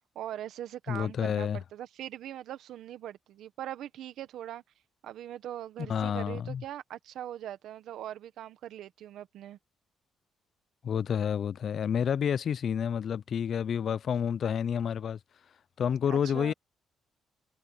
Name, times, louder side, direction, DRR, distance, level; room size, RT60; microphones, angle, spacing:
voice 1, 0.1-4.6 5.0-9.6 16.1-16.5, right 11 dB, 80° right, 1.4 m, -41 dB
voice 2, 0.9-1.6 5.8-6.6 10.8-15.2 15.8-16.5, left 8 dB, 55° left, 0.4 m, -29 dB
cardioid pair, 90°, 0 cm